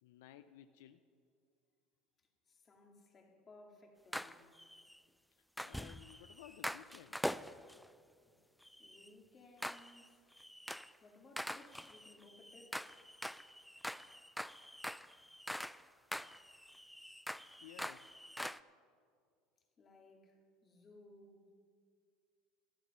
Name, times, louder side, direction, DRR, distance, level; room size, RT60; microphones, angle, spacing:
voice 1, 0.0-1.0 5.6-7.3 17.6-18.1, left 12 dB, 85° left, 0.4 m, -57 dB
voice 2, 2.2-4.5 8.3-8.4 8.8-10.4 11.0-12.9 19.8-21.5, left 2 dB, 30° left, 2.4 m, -61 dB
sound 1, 4.1-5.0 5.6-7.9 8.6-9.1 9.6-10.1 10.4-11.0 11.4-15.8 16.1-18.6, equal, ahead, 0.3 m, -44 dB
12.0 x 12.0 x 5.6 m
supercardioid pair, 100°, 0 cm